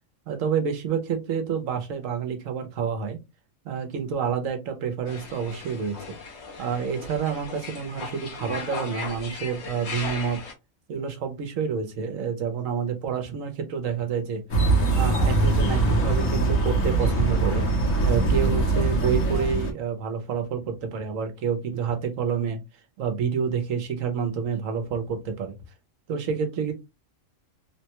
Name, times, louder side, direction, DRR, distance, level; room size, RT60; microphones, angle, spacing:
voice 1, 0.3-3.2 3.6-6.0 6.6-10.4 10.9-14.4 14.9-17.6 18.0-22.6 23.0-25.6 26.1-26.7, right 7 dB, 80° right, 6 dB, 1.2 m, -28 dB
sound 1, 5.1-10.5, left 4 dB, 60° left, 1.3 m, -37 dB
sound 2, 14.5-19.7, right 3 dB, 80° left, 1.5 m, -22 dB
3.6 x 2.2 x 2.9 m, 0.23 s
omnidirectional pair, 1.3 m